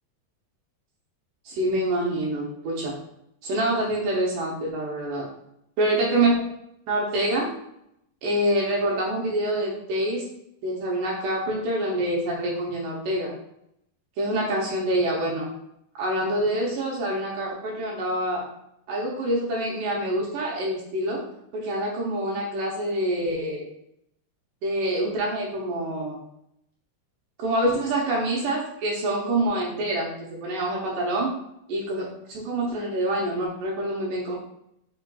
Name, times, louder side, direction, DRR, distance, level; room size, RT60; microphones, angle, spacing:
voice 1, 1.5-2.9 3.4-5.3 5.8-6.4 6.9-7.5 8.2-10.2 10.6-13.3 14.2-15.5 16.0-18.5 18.9-21.2 21.5-23.7 24.6-26.2 27.4-31.3 31.7-34.4, right 1 dB, 75° right, -3 dB, 1.9 m, -26 dB
5.9 x 3.7 x 2.2 m, 0.77 s
omnidirectional pair, 4.6 m